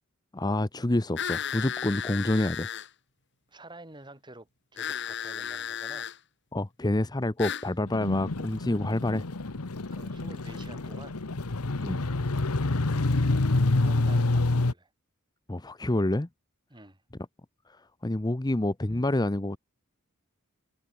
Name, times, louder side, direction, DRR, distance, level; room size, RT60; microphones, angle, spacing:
voice 1, 0.3-2.7 6.5-9.3 11.8-12.0 15.5-16.3 17.7-19.6, left 1 dB, 20° left, 0.7 m, -28 dB
sound 1, 1.2-2.9 4.8-6.2 7.4-7.7, left 8 dB, 55° left, 5.8 m, -34 dB
voice 2, 3.5-4.5 4.7-6.1 9.9-11.2 12.8-14.9 16.7-17.0, right 2 dB, 20° right, 6.9 m, -49 dB
sound 2, 7.9-14.7, left 2 dB, 85° left, 1.2 m, -27 dB
head